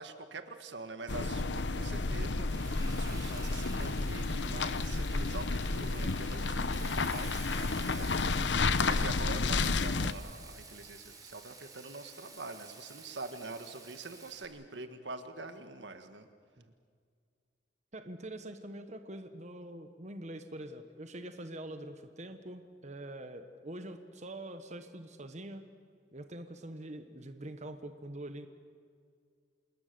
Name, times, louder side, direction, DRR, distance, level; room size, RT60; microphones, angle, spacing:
voice 1, 0.0-16.3, right 3 dB, 85° right, 8 dB, 1.7 m, -45 dB
sound 1, 1.1-10.1, left 3 dB, 90° left, 0.9 m, -31 dB
Frying (food), 2.5-14.5, right 4 dB, 20° right, 3.4 m, -51 dB
voice 2, 17.9-25.6 26.1-28.5, right 1 dB, 40° right, 8 dB, 1.2 m, -44 dB
27.5 x 20.5 x 6.8 m, 2.1 s
head